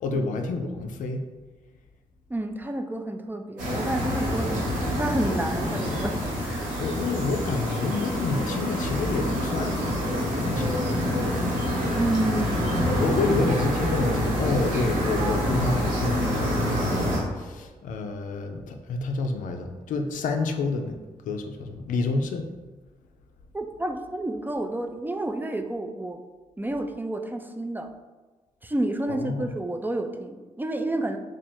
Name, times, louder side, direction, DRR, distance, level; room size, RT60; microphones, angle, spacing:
voice 1, 0.0-1.3 4.3-4.4 5.3-5.4 6.8-10.1 10.4-10.7 13.0-22.5 29.1-29.5, left 3 dB, 75° left, 5 dB, 0.4 m, -29 dB
voice 2, 2.3-6.1 6.4-6.8 11.9-13.0 23.5-26.2 26.6-27.9 28.6-31.2, right 1 dB, 15° right, 5 dB, 0.4 m, -30 dB
sound 1, 3.6-17.2, equal, 90° right, 0.9 m, -26 dB
2.9 x 2.4 x 4.2 m, 1.2 s
supercardioid pair, 50°, 14 cm